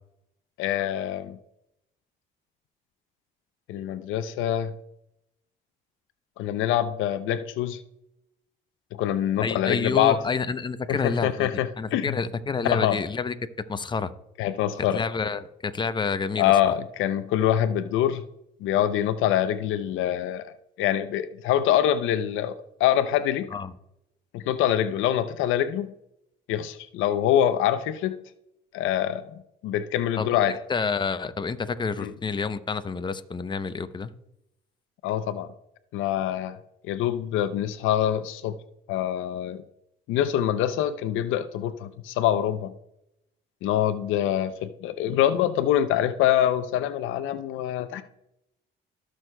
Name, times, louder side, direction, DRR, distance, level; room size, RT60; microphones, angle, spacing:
voice 1, 0.6-1.4 3.7-4.7 6.4-7.8 8.9-10.2 10.9-12.2 12.7-13.0 14.4-15.0 16.4-18.2 18.6-23.5 24.3-25.9 26.5-28.2 28.7-30.6 32.0-32.1 35.0-35.5 35.9-36.6 36.9-38.6 38.9-39.6 40.1-42.8 43.6-48.0, left 11 dB, 80° left, 12 dB, 0.6 m, -25 dB
voice 2, 9.4-11.5 11.8-13.3 13.7-14.1 14.9-16.5 23.5-23.7 30.2-34.1, left 5 dB, 25° left, 11 dB, 0.7 m, -29 dB
19.0 x 6.3 x 2.2 m, 0.84 s
supercardioid pair, 75°, 20 cm